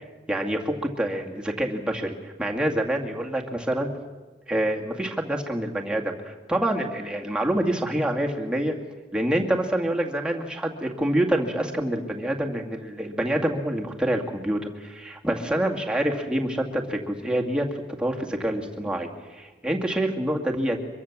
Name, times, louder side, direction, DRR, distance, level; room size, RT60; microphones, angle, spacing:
voice 1, 0.3-3.9 4.5-8.8 9.1-17.7 18.0-20.8, right 1 dB, 5° right, 0 dB, 2.2 m, -26 dB
24.5 x 23.0 x 7.3 m, 1.3 s
head